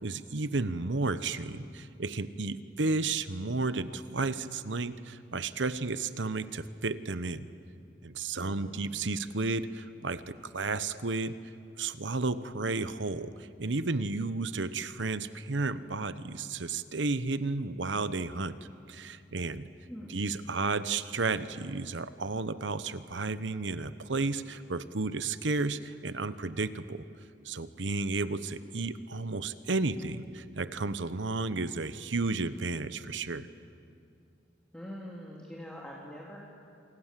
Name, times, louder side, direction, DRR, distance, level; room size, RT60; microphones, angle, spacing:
voice 1, 0.0-7.5 8.0-11.3 11.8-18.6 18.9-19.7 20.1-27.0 27.4-33.5, right 3 dB, 75° right, 13 dB, 1.1 m, -32 dB
voice 2, 8.4-8.8 19.9-20.2 34.7-36.4, equal, 5° left, -4 dB, 3.1 m, -44 dB
28.5 x 27.0 x 7.6 m, 2.5 s
head